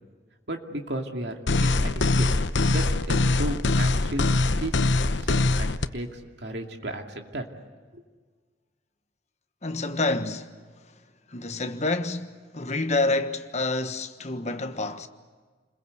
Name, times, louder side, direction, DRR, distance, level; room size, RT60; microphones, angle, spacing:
voice 1, 0.5-2.3 2.7-4.2 4.6-7.4 7.9-8.0, right 1 dB, 65° right, 2.5 m, -34 dB
sound 1, 1.5-5.9, left 2 dB, 80° left, 0.9 m, -23 dB
voice 2, 9.6-10.6 10.8-11.0 11.3-15.1, left 2 dB, 40° left, 1.3 m, -28 dB
29.5 x 22.0 x 8.1 m
head